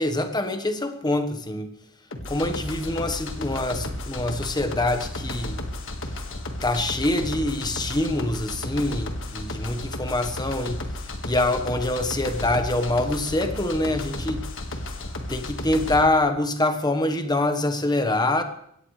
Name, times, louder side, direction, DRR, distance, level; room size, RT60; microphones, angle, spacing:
voice 1, 0.0-1.7 2.3-5.6 6.6-10.9 11.2-14.4 15.3-18.4, left 2 dB, 20° left, 7 dB, 1.3 m, -25 dB
sound 1, 2.1-16.0, left 1 dB, 60° left, 1.8 m, -33 dB
22.5 x 17.5 x 3.3 m, 0.71 s
head